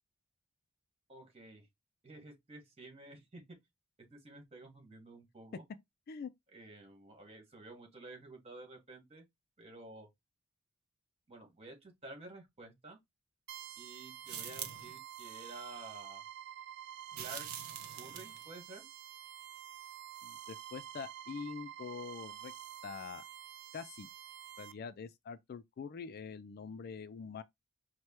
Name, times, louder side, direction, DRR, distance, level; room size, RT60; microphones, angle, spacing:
voice 1, 1.1-1.7 2.0-3.4 4.1-5.6 6.5-9.2 9.6-10.1 11.3-13.0 13.8-16.2 17.2-17.5 18.0-18.9, right 2 dB, 30° right, 1.7 m, -51 dB
sound 1, 13.5-24.7, right 11 dB, 50° right, 0.4 m, -49 dB
sound 2, 14.2-15.0 17.1-18.5, right 8 dB, 85° right, 0.9 m, -44 dB
voice 2, 20.2-22.5 22.8-23.2 23.7-24.1 24.6-27.4, left 5 dB, 45° left, 0.3 m, -44 dB
4.6 x 2.2 x 4.3 m
head